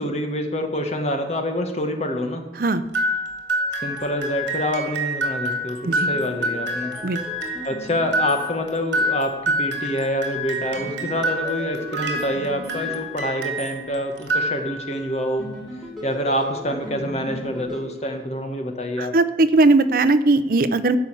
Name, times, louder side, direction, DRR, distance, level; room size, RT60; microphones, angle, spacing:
voice 1, 0.0-2.4 3.8-7.0 7.6-15.5 16.0-19.1, equal, 35° left, 4 dB, 1.5 m, -26 dB
sound 1, 2.9-13.8 14.2-15.0, equal, 80° right, 2.1 m, -27 dB
sound 2, 6.1-9.2 10.7-13.9 15.4-18.8, equal, ahead, 3.8 m, -38 dB
voice 2, 19.0-21.0, right 2 dB, 50° right, 13 dB, 0.6 m, -18 dB
13.0 x 5.5 x 8.3 m, 1.1 s
head